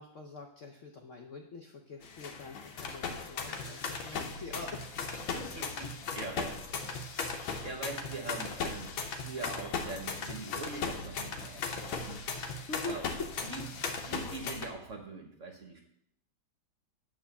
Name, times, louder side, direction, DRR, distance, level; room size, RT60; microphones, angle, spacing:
voice 1, 0.0-5.5 12.7-13.2, left 3 dB, 65° left, 3 dB, 0.7 m, -44 dB
sound 1, 2.0-14.7, left 5 dB, 80° left, 1.6 m, -37 dB
voice 2, 3.5-4.0 5.3-5.9 6.1-12.2 12.9-13.1 13.4-15.8, right 3 dB, 50° right, 3 dB, 1.1 m, -43 dB
8.8 x 3.5 x 6.9 m, 0.73 s
omnidirectional pair, 2.1 m